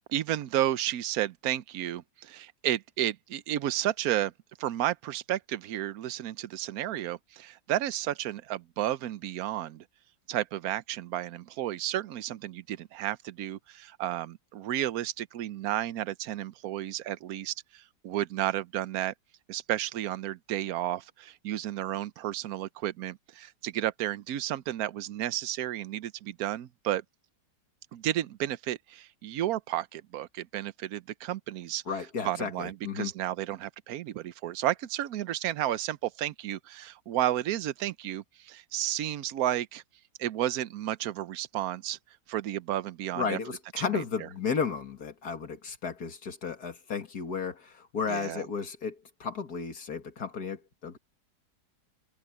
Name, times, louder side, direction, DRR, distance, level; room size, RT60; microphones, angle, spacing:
voice 1, 0.1-4.3 4.6-9.8 10.3-19.1 19.5-27.0 27.9-31.8 32.2-39.8 40.2-42.0 42.3-43.4 43.8-44.3 48.1-48.4, right 12 dB, 65° right, 1.1 m, -32 dB
voice 2, 31.9-33.1 43.2-51.0, left 6 dB, 65° left, 2.5 m, -33 dB
omnidirectional pair, 1.9 m